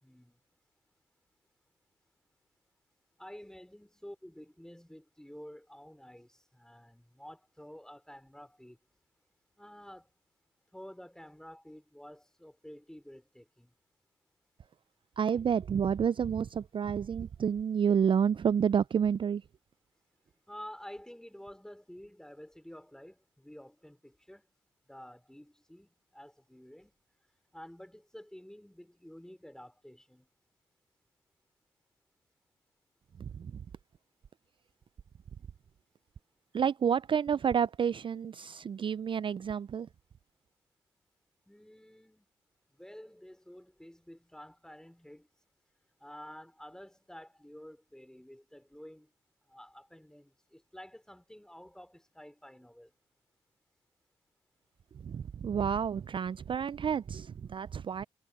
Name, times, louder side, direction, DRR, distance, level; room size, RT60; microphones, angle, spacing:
voice 1, 0.0-0.4 3.2-8.8 9.6-10.1 10.7-13.7 20.5-24.4 24.9-26.9 27.5-30.3 41.5-42.3 42.7-45.3 46.0-49.1 49.5-52.9, equal, 5° left, 4.2 m, -50 dB
voice 2, 15.2-19.4 33.2-33.6 36.5-39.9 54.9-58.0, right 7 dB, 45° right, 0.4 m, -29 dB
supercardioid pair, 40°, 12 cm